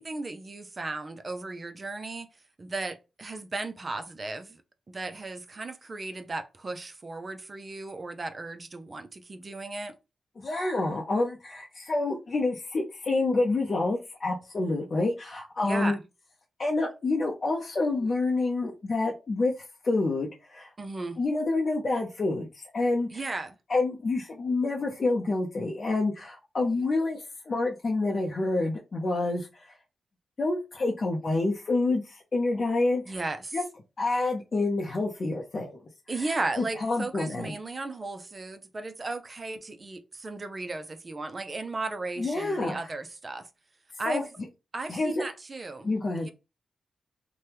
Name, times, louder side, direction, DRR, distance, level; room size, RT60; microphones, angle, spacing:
voice 1, 0.0-2.3 2.6-4.6 4.9-9.9 15.6-16.0 20.8-21.2 23.1-23.6 33.1-33.6 36.1-43.5 44.0-44.2 44.7-45.9 46.2-46.3, right 3 dB, 40° right, 0.5 m, -35 dB
voice 2, 10.4-16.0 16.6-19.5 19.8-20.7 21.2-23.3 23.7-29.7 30.4-33.2 33.5-33.6 34.0-35.8 36.2-36.3 36.6-37.6 42.2-42.9 44.1-44.2 44.9-45.2 45.8-46.3, left 2 dB, 50° left, 0.6 m, -28 dB
2.8 x 2.2 x 3.3 m
cardioid pair, 70°, 0 cm